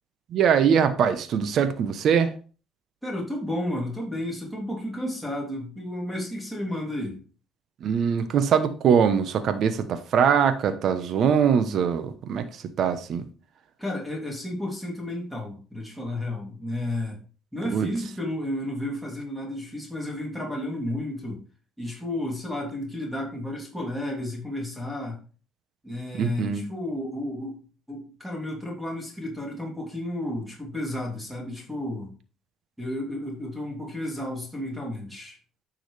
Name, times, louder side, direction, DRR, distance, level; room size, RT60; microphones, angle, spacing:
voice 1, 0.3-2.3 7.8-12.5 12.8-13.3 17.7-17.9 26.2-26.6, right 7 dB, 60° right, 1.0 m, -22 dB
voice 2, 3.0-7.2 13.8-17.2 17.5-21.4 21.8-25.2 25.8-27.6 27.9-32.1 32.8-35.4, left 1 dB, ahead, 3.0 m, -32 dB
9.7 x 6.2 x 3.4 m
cardioid pair, 90°, 0 cm